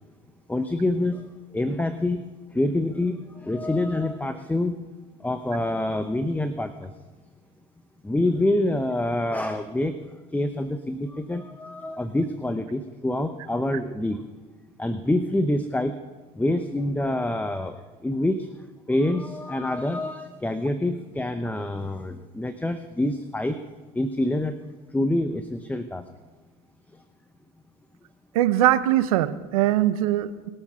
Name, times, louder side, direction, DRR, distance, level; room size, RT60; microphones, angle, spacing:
voice 1, 0.5-1.2 1.5-2.2 2.5-4.7 5.2-6.9 8.0-9.9 10.3-14.2 14.8-15.9 16.4-18.5 18.9-23.6 23.9-24.6 24.9-26.1, left 1 dB, 10° left, 9 dB, 0.9 m, -26 dB
voice 2, 28.3-30.5, right 13 dB, 90° right, 13 dB, 0.8 m, -21 dB
21.5 x 7.3 x 5.6 m, 1.3 s
hypercardioid pair, 75°, 18 cm